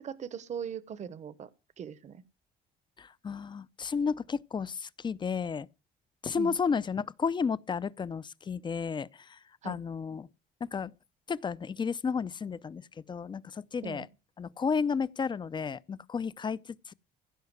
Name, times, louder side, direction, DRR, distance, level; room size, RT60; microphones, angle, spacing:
voice 1, 0.0-1.5 1.8-2.2 6.4-6.6 9.6-9.8 13.8-14.1, right 7 dB, 45° right, 1.0 m, -39 dB
voice 2, 3.0-5.7 6.2-9.1 9.6-10.3 10.7-10.9 11.3-12.8 13.1-14.1 14.4-16.6, left 5 dB, 25° left, 0.6 m, -32 dB
16.0 x 5.7 x 9.5 m
cardioid pair, 110°, 17 cm